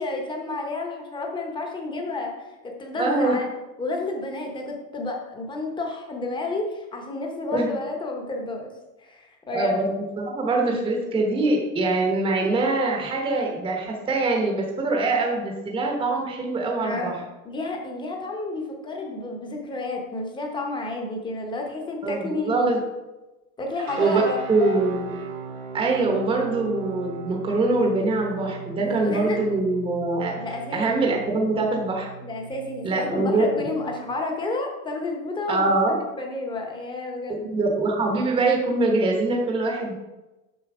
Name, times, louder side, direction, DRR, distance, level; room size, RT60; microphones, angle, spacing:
voice 1, 0.0-3.5 3.8-8.7 9.0-9.7 16.8-22.8 23.6-24.8 28.8-29.4 30.4-31.0 32.2-37.6, left 2 dB, 10° left, 2 dB, 1.0 m, -31 dB
voice 2, 3.0-3.4 7.5-7.7 9.5-17.2 22.0-22.8 24.0-24.2 24.5-25.1 25.7-30.3 30.7-32.1 32.8-33.5 35.5-35.9 37.4-39.9, right 2 dB, 15° right, 0 dB, 1.0 m, -23 dB
sound 1, 23.8-34.0, right 6 dB, 80° right, 2.2 m, -38 dB
7.1 x 6.3 x 4.9 m, 1.1 s
supercardioid pair, 165°, 40 cm